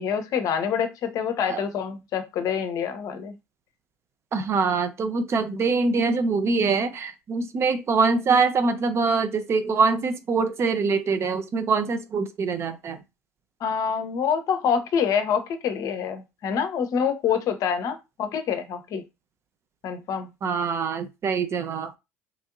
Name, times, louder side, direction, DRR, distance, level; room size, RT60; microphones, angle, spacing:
voice 1, 0.0-3.3 13.6-19.0 19.8-20.3, left 7 dB, 50° left, 0.6 m, -26 dB
voice 2, 4.3-13.0 20.4-22.0, right 4 dB, 40° right, 0.5 m, -24 dB
3.0 x 2.6 x 2.5 m
figure-of-eight pair, 60°, 7 cm